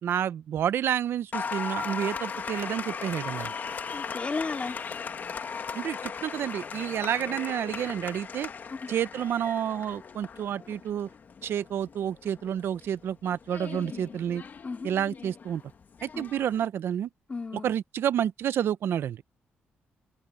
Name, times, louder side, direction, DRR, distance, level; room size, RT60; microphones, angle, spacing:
voice 1, 0.0-3.5 5.7-8.5 8.9-11.1 11.4-14.4 14.8-15.6 16.0-17.1 17.6-19.2, right 9 dB, 75° right, 0.8 m, -29 dB
Applause, 1.3-16.7, left 6 dB, 50° left, 1.9 m, -38 dB
voice 2, 3.9-4.8 8.7-8.9 14.6-14.9 16.1-16.3 17.3-17.7, left 4 dB, 30° left, 2.4 m, -34 dB
cardioid pair, 90°, 4 cm